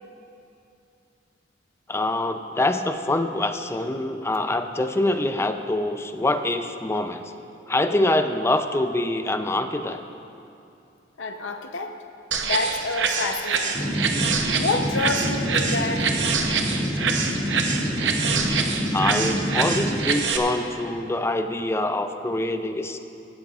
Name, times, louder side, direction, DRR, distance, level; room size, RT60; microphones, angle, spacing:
voice 1, 1.9-7.2 7.7-10.0 18.9-23.0, left 2 dB, 15° left, 8 dB, 0.4 m, -25 dB
voice 2, 11.2-12.0 12.4-16.1, left 3 dB, 85° left, 5 dB, 0.8 m, -29 dB
sound 1, 12.3-20.4, right 5 dB, 70° right, 0.9 m, -26 dB
sound 2, 13.7-20.0, equal, 30° left, 2.2 m, -27 dB
17.0 x 13.5 x 2.4 m, 2.6 s
head